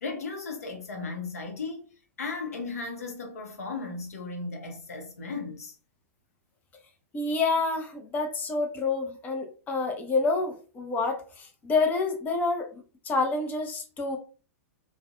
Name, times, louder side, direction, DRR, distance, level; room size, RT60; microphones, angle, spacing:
voice 1, 0.0-1.9 2.2-5.7, left 4 dB, 75° left, 0.7 m, -36 dB
voice 2, 7.1-14.2, left 3 dB, 20° left, 0.6 m, -28 dB
2.5 x 2.1 x 2.5 m
hypercardioid pair, 105°, 8 cm